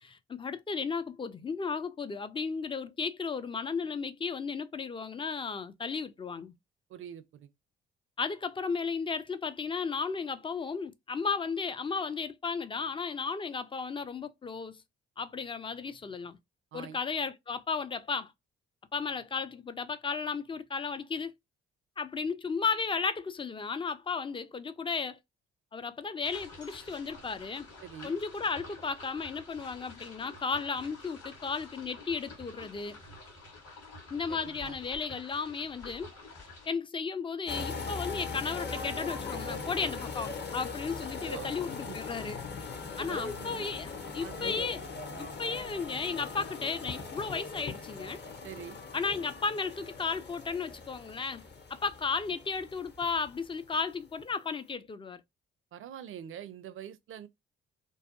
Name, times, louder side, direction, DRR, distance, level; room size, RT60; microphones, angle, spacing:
voice 1, 0.0-6.5 8.2-14.8 15.2-16.4 16.7-18.3 18.9-21.3 22.0-25.2 25.7-27.7 28.0-33.0 34.1-36.1 36.7-42.4 43.0-44.8 45.2-48.2 48.9-51.4 51.7-55.2, left 5 dB, 20° left, 0.3 m, -34 dB
voice 2, 6.9-7.5 16.7-17.0 27.8-28.1 34.3-34.8 41.3-41.5 41.9-42.0 43.0-43.7 44.2-44.5 48.4-48.8 55.7-57.3, right 9 dB, 45° right, 0.4 m, -44 dB
sound 1, 26.2-36.7, left 2 dB, 50° left, 1.3 m, -49 dB
sound 2, 37.5-53.8 54.0-54.3, left 4 dB, 35° left, 0.7 m, -40 dB
2.5 x 2.2 x 2.5 m
hypercardioid pair, 45°, 30 cm